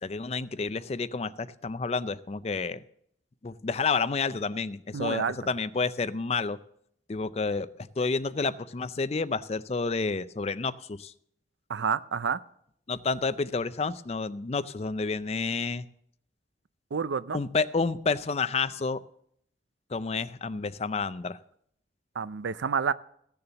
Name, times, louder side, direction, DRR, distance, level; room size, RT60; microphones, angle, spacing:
voice 1, 0.0-2.8 3.4-6.6 7.1-7.7 8.0-11.1 12.9-15.9 17.3-19.0 19.9-21.4, left 4 dB, 35° left, 15 dB, 0.4 m, -30 dB
voice 2, 4.9-5.4 11.7-12.4 16.9-17.4 22.2-22.9, right 6 dB, 90° right, 16 dB, 0.5 m, -29 dB
15.5 x 6.9 x 6.8 m, 0.70 s
head